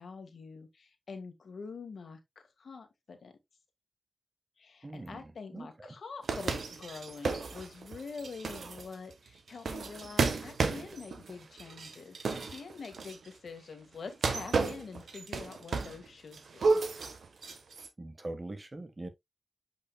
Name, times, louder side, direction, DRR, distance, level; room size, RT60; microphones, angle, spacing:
voice 1, 0.0-3.4 4.6-16.7, left 4 dB, 80° left, 1.7 m, -46 dB
voice 2, 4.8-5.9 18.0-19.1, right 2 dB, 40° right, 1.5 m, -42 dB
sound 1, 6.2-13.3 14.1-16.1 16.3-17.9, right 4 dB, 85° right, 1.2 m, -33 dB
8.3 x 5.0 x 2.3 m
cardioid pair, 40°, 0 cm